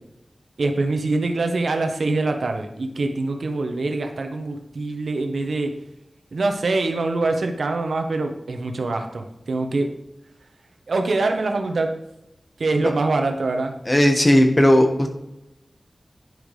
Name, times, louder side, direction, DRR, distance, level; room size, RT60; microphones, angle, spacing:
voice 1, 0.6-5.8 6.3-9.9 10.9-12.0 12.6-13.7, right 3 dB, 85° right, 5 dB, 0.9 m, -24 dB
voice 2, 13.9-15.1, left 1 dB, 30° left, 4 dB, 1.3 m, -16 dB
10.5 x 5.2 x 3.2 m, 0.88 s
cardioid pair, 50°, 0 cm